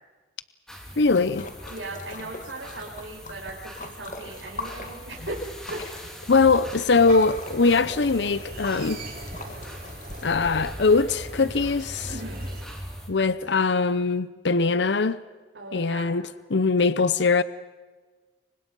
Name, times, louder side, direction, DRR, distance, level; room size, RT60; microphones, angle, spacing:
sound 1, 0.7-13.1, equal, 5° left, 3.7 m, -41 dB
voice 1, 1.0-1.5 6.3-9.0 10.2-12.1 13.1-15.2 15.7-17.4, left 4 dB, 70° left, 0.7 m, -21 dB
Splash splatter, 1.1-10.7, left 2 dB, 45° left, 2.3 m, -42 dB
voice 2, 1.7-5.8 12.0-12.5 15.5-16.1, right 2 dB, 90° right, 5.1 m, -38 dB
sound 2, 7.1-12.7, right 2 dB, 50° right, 6.6 m, -41 dB
29.0 x 24.5 x 5.5 m
head